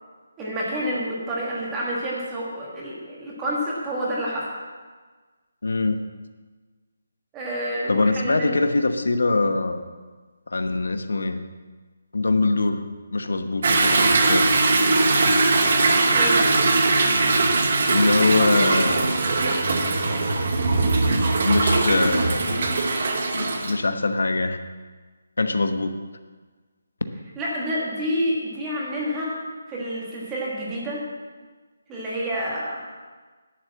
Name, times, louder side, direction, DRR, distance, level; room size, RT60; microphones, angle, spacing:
voice 1, 0.4-4.5 7.3-8.6 16.1-16.4 27.4-29.4 29.7-31.0 31.9-32.8, equal, 10° right, -5 dB, 1.6 m, -28 dB
voice 2, 5.6-6.0 7.9-9.9 10.5-11.4 12.1-14.5 17.9-19.0 20.9-21.2 21.4-22.8 23.3-24.6 25.4-26.0, left 3 dB, 90° left, 8 dB, 1.0 m, -23 dB
Toilet flush / Drip / Trickle dribble, 13.6-23.7, right 3 dB, 35° right, 1.0 m, -20 dB
11.0 x 6.8 x 7.4 m, 1.4 s
hypercardioid pair, 180°, 0 cm